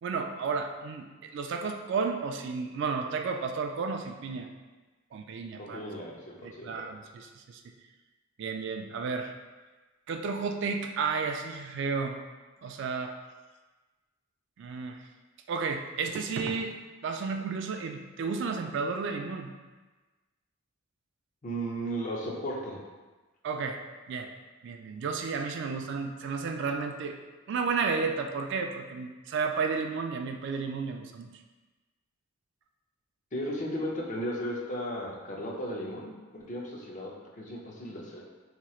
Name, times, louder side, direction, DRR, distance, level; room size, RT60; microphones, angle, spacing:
voice 1, 0.0-4.5 5.1-5.8 6.4-7.6 8.4-9.3 10.1-12.2 12.6-13.1 14.6-15.0 15.5-16.7 17.0-19.5 23.4-23.8 24.1-24.3 24.6-27.2 27.5-31.3, right 5 dB, 60° right, 4 dB, 0.3 m, -32 dB
voice 2, 5.6-6.9 21.4-22.8 33.3-37.1 37.4-38.2, equal, 40° left, -2 dB, 0.6 m, -35 dB
4.3 x 2.9 x 2.4 m, 1.2 s
head